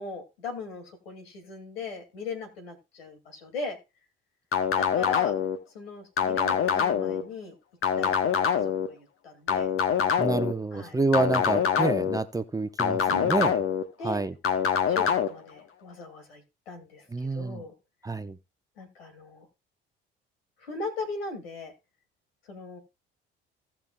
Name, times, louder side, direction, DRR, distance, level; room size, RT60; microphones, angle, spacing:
voice 1, 0.0-3.8 4.8-5.3 5.7-7.5 8.0-8.1 8.5-9.7 10.7-11.0 13.1-13.4 14.0-14.2 14.9-17.7 18.8-19.5 20.6-21.7 22.5-22.8, left 4 dB, 80° left, 2.4 m, -38 dB
sound 1, 4.5-5.6 6.2-7.2 7.8-8.9 9.5-10.5 11.1-12.2 12.8-13.8 14.4-15.3, left 7 dB, 50° left, 1.3 m, -25 dB
voice 2, 10.2-13.6 14.0-14.3 17.1-17.6 18.0-18.4, right 3 dB, 10° right, 0.8 m, -28 dB
17.0 x 5.8 x 2.3 m
figure-of-eight pair, 55°, 29 cm